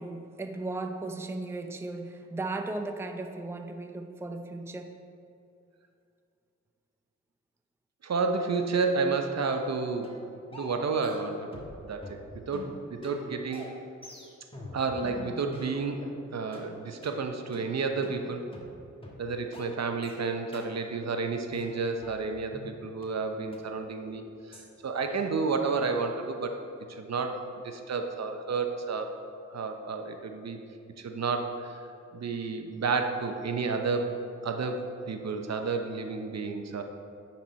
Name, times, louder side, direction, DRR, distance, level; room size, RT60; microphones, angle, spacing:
voice 1, 0.0-5.0, right 2 dB, 10° right, 6 dB, 0.5 m, -36 dB
voice 2, 8.0-10.1 10.5-12.2 12.5-13.7 14.7-18.4 19.2-26.5 26.9-29.2 29.5-30.6 31.0-31.8 32.1-34.1 34.4-36.8, right 4 dB, 55° right, 5 dB, 0.8 m, -31 dB
sound 1, 9.5-9.7 10.0-10.2 10.5-11.8 12.0-16.2 16.5-16.7 17.0-17.2 17.5-17.7 18.0-18.2 18.5-18.7 19.0-19.2 19.5-19.7 20.0-20.2 20.5-20.7 21.0-21.2 21.5-22.7 23.0-23.1 23.5-23.6 24.0-24.2 24.5-24.7 25.0-25.2, left 1 dB, 15° left, 1.6 m, -44 dB
9.7 x 4.3 x 4.3 m, 2.5 s
cardioid pair, 45°, 31 cm